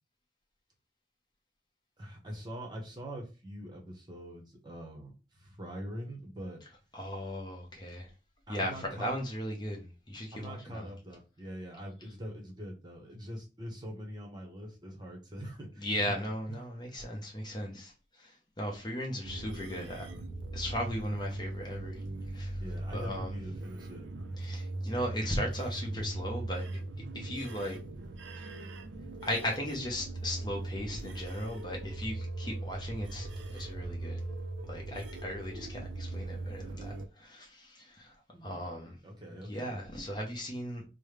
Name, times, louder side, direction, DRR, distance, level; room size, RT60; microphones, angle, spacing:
voice 1, 2.0-6.6 8.5-9.1 10.3-16.1 22.6-24.3 38.3-38.6 39.0-39.8, equal, 25° right, 0.9 m, -43 dB
voice 2, 6.9-8.1 8.5-10.9 15.8-20.1 20.5-22.0 22.3-22.6 22.9-23.4 24.4-26.7 27.1-27.8 28.4-28.7 29.2-34.2 34.7-38.1 38.4-39.0 39.4-40.8, equal, 25° left, 0.8 m, -37 dB
sound 1, 19.2-37.1, right 2 dB, 85° right, 0.5 m, -39 dB
5.2 x 2.1 x 3.3 m
head